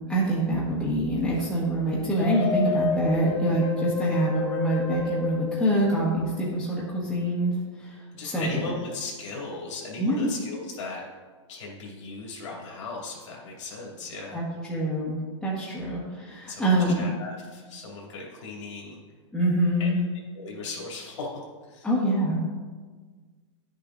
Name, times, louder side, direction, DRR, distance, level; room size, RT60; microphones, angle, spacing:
voice 1, 0.1-7.5 7.8-8.7 10.0-10.3 14.3-15.2 15.4-17.1 19.3-20.0 21.8-22.4, right 1 dB, 5° left, -8 dB, 1.4 m, -25 dB
sound 1, 2.2-6.4, left 4 dB, 35° left, 1.5 m, -30 dB
voice 2, 8.1-11.0 11.5-14.4 16.5-16.6 17.0-19.0 19.8-19.9 20.3-21.4 21.7-21.9, left 3 dB, 70° left, -4 dB, 2.6 m, -37 dB
10.5 x 6.8 x 2.6 m, 1.4 s
hypercardioid pair, 150°, 16 cm